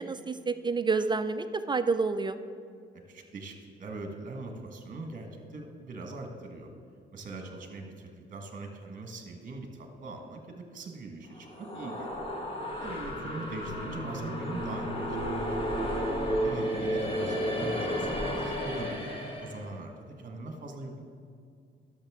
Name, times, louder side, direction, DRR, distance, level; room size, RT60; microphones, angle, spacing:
voice 1, 0.0-2.4, right 4 dB, 25° right, 11 dB, 0.3 m, -29 dB
voice 2, 2.9-6.7 7.1-12.3 12.8-15.2 15.5-15.7 16.4-21.0, right 2 dB, 45° right, 4 dB, 1.5 m, -41 dB
sound 1, 11.3-19.6, equal, 25° left, 1.5 m, -32 dB
12.0 x 6.5 x 3.6 m, 2.3 s
cardioid pair, 90°, 20 cm